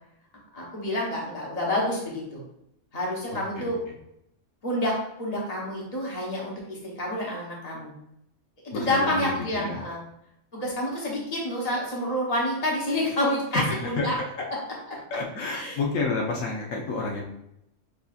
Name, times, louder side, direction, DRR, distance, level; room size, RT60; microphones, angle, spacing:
voice 1, 0.5-2.4 2.9-3.8 4.6-4.9 5.2-7.9 8.6-10.0 10.5-14.1 15.5-15.8, left 1 dB, 30° left, -3 dB, 1.2 m, -28 dB
voice 2, 3.3-4.0 8.7-9.8 13.5-14.1 15.1-17.2, left 3 dB, 75° left, -1 dB, 1.1 m, -30 dB
6.6 x 2.7 x 2.4 m, 0.79 s
omnidirectional pair, 1.3 m